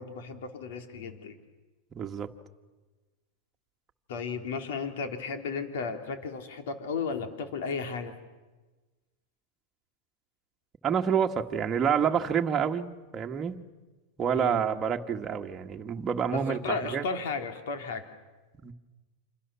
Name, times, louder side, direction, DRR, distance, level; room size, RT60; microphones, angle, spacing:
voice 1, 0.0-1.3 4.1-8.1 14.3-14.6 16.3-18.0, left 5 dB, 75° left, 6 dB, 3.8 m, -34 dB
voice 2, 1.9-2.3 10.8-13.6 14.2-17.0 18.6-18.7, right 7 dB, 20° right, 3 dB, 1.7 m, -28 dB
28.5 x 27.0 x 7.1 m, 1.2 s
supercardioid pair, 140°, 0 cm